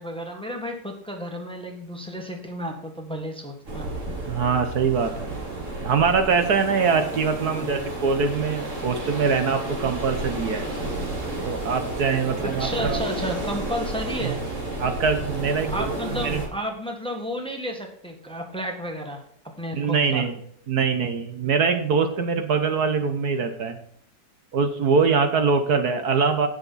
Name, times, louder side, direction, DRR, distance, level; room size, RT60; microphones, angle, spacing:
voice 1, 0.0-3.9 7.5-7.9 12.4-14.4 15.7-20.2, equal, 5° left, 3 dB, 1.6 m, -32 dB
sound 1, 3.7-16.5, right 2 dB, 45° right, 2.8 m, -31 dB
voice 2, 4.3-5.4 5.8-10.7 11.4-13.0 14.2-14.3 14.8-16.4 19.7-20.4 20.7-23.8 24.5-26.5, right 5 dB, 60° right, 7 dB, 1.5 m, -23 dB
17.5 x 6.9 x 4.1 m, 0.65 s
omnidirectional pair, 1.9 m